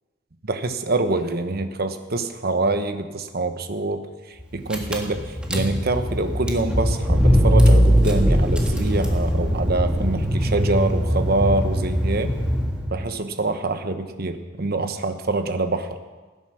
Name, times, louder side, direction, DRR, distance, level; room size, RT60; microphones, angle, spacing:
voice 1, 0.4-4.0 4.5-12.3 12.9-16.0, right 2 dB, 55° right, 8 dB, 1.1 m, -25 dB
Car / Engine, 4.4-4.5 4.7-13.1, equal, 5° right, 1.6 m, -20 dB
16.0 x 9.7 x 6.4 m, 1.3 s
head